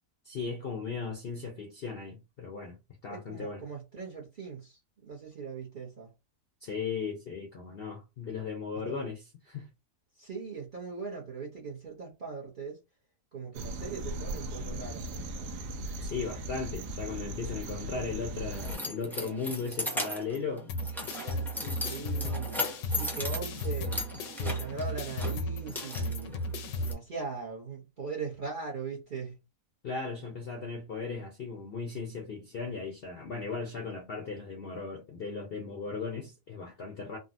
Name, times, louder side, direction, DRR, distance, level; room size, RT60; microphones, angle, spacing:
voice 1, 0.2-2.8 3.0-3.6 6.6-9.7 16.0-20.7 29.8-37.2, left 4 dB, 60° left, 0.6 m, -37 dB
voice 2, 3.1-6.1 8.9-9.1 10.1-12.8 13.3-15.1 21.8-26.4 26.8-29.4, right 5 dB, 45° right, 0.7 m, -40 dB
sound 1, 13.5-18.8, right 1 dB, 80° right, 1.2 m, -38 dB
Keys jangling, 17.8-26.9, left 1 dB, 5° left, 0.3 m, -38 dB
sound 2, 20.7-26.9, left 1 dB, 80° left, 1.2 m, -35 dB
3.7 x 2.2 x 2.5 m
omnidirectional pair, 1.7 m